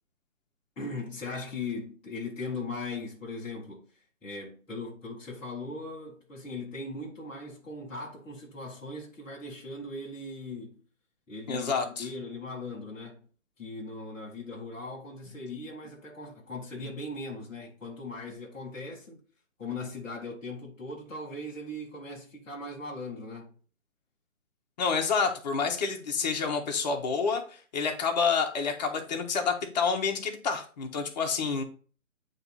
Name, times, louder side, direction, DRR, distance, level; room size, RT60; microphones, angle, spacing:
voice 1, 0.8-3.8 4.2-10.8 11.3-13.2 13.6-19.2 19.6-23.5, left 2 dB, 5° left, 0.6 m, -39 dB
voice 2, 11.5-12.1 24.8-31.6, left 5 dB, 30° left, 1.0 m, -28 dB
8.9 x 3.1 x 4.1 m
hypercardioid pair, 150°, 41 cm